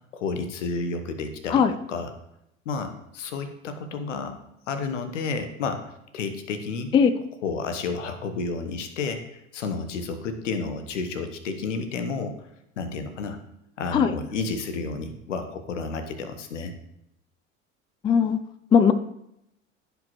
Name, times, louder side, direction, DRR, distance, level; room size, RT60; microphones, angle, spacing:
voice 1, 0.1-1.6 1.9-2.1 2.6-4.4 4.7-6.9 7.4-12.5 12.8-13.4 13.8-16.8, left 4 dB, 70° left, 8 dB, 1.1 m, -31 dB
voice 2, 18.0-18.4 18.7-18.9, left 7 dB, 15° left, 13 dB, 0.3 m, -18 dB
14.5 x 5.1 x 3.1 m, 0.80 s
figure-of-eight pair, 70°, 38 cm